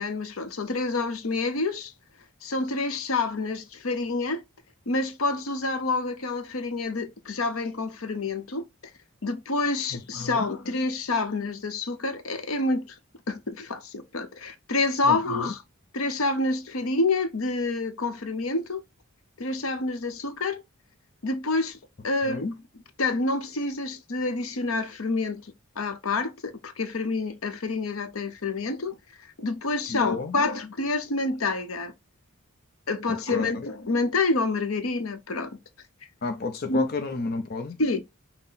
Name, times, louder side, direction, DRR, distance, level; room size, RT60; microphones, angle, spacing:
voice 1, 0.0-1.9 2.4-4.4 4.9-8.6 9.2-12.9 13.3-15.6 15.9-18.8 19.4-20.6 21.2-21.8 22.0-22.5 23.0-29.0 29.4-31.9 32.9-35.5 36.7-36.9 37.8-38.0, left 3 dB, 75° left, 0.8 m, -28 dB
voice 2, 9.9-10.5 15.0-15.5 22.2-22.5 29.9-30.4 33.3-33.7 36.2-37.8, left 4 dB, 45° left, 0.6 m, -32 dB
5.7 x 2.1 x 4.0 m
head